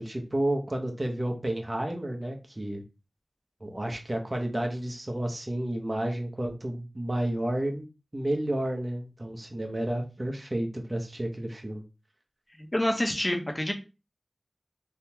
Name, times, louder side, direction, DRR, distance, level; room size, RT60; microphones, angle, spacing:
voice 1, 0.0-2.8 3.6-7.8 8.1-11.8, right 1 dB, 35° right, 3 dB, 0.9 m, -31 dB
voice 2, 12.6-13.7, left 1 dB, 25° left, 3 dB, 0.7 m, -27 dB
3.5 x 2.2 x 2.9 m, 0.30 s
wide cardioid pair, 50°, 0 cm